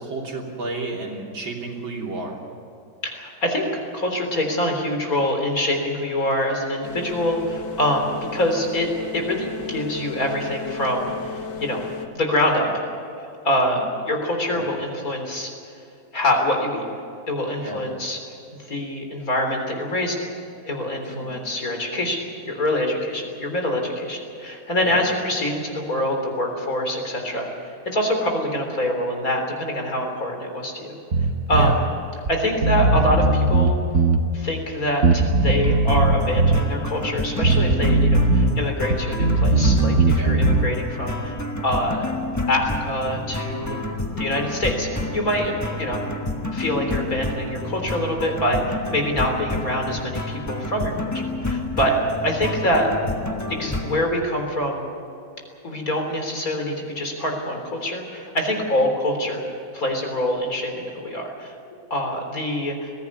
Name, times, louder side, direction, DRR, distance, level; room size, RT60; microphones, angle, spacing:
voice 1, 0.0-2.4 13.7-13.8 14.5-14.6 17.6-17.8 21.0-21.3 24.8-25.0 31.5-31.8 40.1-40.4 43.6-43.9 45.4-45.6 51.9-52.0 58.6-58.7, right 2 dB, 90° right, -1 dB, 4.0 m, -32 dB
voice 2, 3.0-11.8 12.1-12.8 13.2-15.5 16.1-16.8 17.3-18.2 18.5-20.3 20.7-22.2 22.5-31.0 31.5-31.7 32.3-33.8 34.3-41.4 41.6-42.1 42.5-43.8 44.2-45.5 45.8-46.0 46.5-51.9 52.2-52.9 53.5-54.9 55.6-59.4 59.7-61.5 61.9-62.9, left 1 dB, 45° left, 3 dB, 4.0 m, -25 dB
sound 1, 6.8-12.1, left 5 dB, 65° left, 2.0 m, -34 dB
Bass guitar, 31.1-31.8 32.3-32.4 32.6-34.2 35.0-36.6 37.4-38.5 38.8-40.7, right 2 dB, 45° right, 1.4 m, -18 dB
sound 2, 35.9-54.0, left 2 dB, 10° left, 0.9 m, -29 dB
21.5 x 16.0 x 9.6 m, 2.5 s
omnidirectional pair, 2.1 m